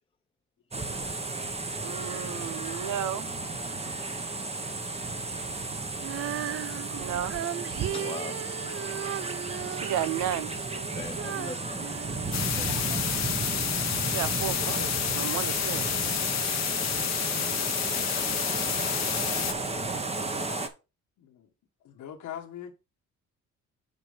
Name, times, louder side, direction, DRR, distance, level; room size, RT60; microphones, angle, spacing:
sound 1, 0.7-20.7, right 3 dB, 20° right, 1.2 m, -33 dB
voice 1, 1.8-3.3 6.9-7.4 9.7-10.5 14.1-14.9 15.1-15.8, right 11 dB, 80° right, 0.8 m, -33 dB
Female singing, 6.0-13.0 13.6-13.7, right 12 dB, 50° right, 0.4 m, -37 dB
voice 2, 7.9-8.3 11.0-11.8 12.2-13.0, left 5 dB, 20° left, 0.5 m, -41 dB
sound 2, 12.3-19.5, left 10 dB, 60° left, 0.9 m, -30 dB
voice 3, 21.2-21.5 21.8-22.7, left 10 dB, 80° left, 1.5 m, -44 dB
7.5 x 4.5 x 5.1 m
cardioid pair, 90°, 30 cm